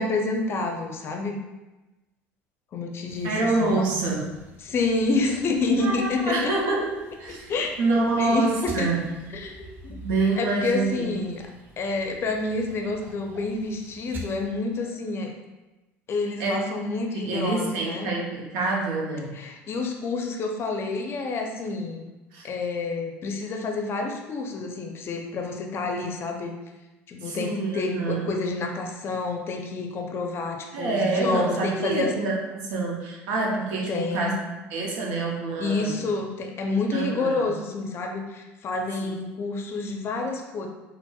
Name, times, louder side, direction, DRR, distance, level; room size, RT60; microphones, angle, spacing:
voice 1, 0.0-1.4 2.7-3.3 3.6-3.8 4.6-6.5 7.5-7.7 8.2-8.9 9.3-10.0 10.4-11.4 11.8-15.3 16.1-18.1 19.3-22.0 22.4-26.5 27.1-32.1 33.9-34.4 35.6-40.7, left 3 dB, 45° left, 3 dB, 0.5 m, -28 dB
sound 1, 3.1-14.4, right 2 dB, 35° right, 0.6 m, -46 dB
voice 2, 3.2-4.3 5.8-7.5 7.8-9.1 10.0-11.1 16.4-16.6 17.1-19.4 22.3-22.5 27.2-28.3 30.7-34.4 34.7-36.0 36.9-37.5 39.0-39.1, right 3 dB, 80° right, -2 dB, 0.7 m, -26 dB
4.1 x 2.0 x 2.3 m, 1.1 s
supercardioid pair, 95°, 6 cm